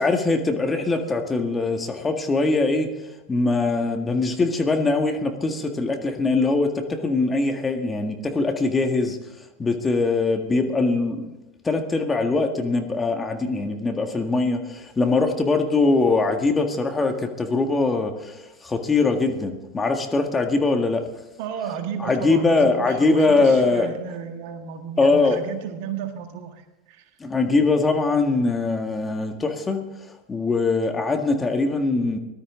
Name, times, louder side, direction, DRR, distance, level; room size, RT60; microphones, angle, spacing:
voice 1, 0.0-2.9 3.3-9.2 9.6-11.3 11.6-21.0 22.0-24.0 25.0-25.4 27.2-32.2, left 3 dB, 20° left, 5 dB, 1.7 m, -22 dB
voice 2, 21.4-27.1, right 7 dB, 60° right, 6 dB, 1.7 m, -33 dB
18.5 x 12.5 x 3.8 m, 1.0 s
hypercardioid pair, 90°, 0 cm